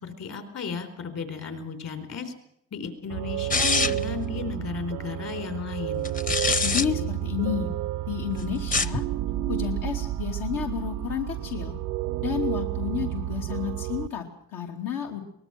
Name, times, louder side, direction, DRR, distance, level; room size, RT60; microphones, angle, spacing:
voice 1, 0.0-2.3 2.7-6.1, left 5 dB, 55° left, 8 dB, 4.4 m, -34 dB
sound 1, 3.1-14.1, right 14 dB, 85° right, 0.7 m, -31 dB
sound 2, 3.5-4.1 6.0-6.9 8.6-9.0, left 4 dB, 25° left, 0.8 m, -24 dB
voice 2, 6.6-7.7 8.1-9.1 9.5-11.7 12.2-15.2, left 9 dB, 85° left, 1 dB, 2.9 m, -31 dB
23.5 x 20.0 x 6.1 m, 0.75 s
cardioid pair, 130°, 32 cm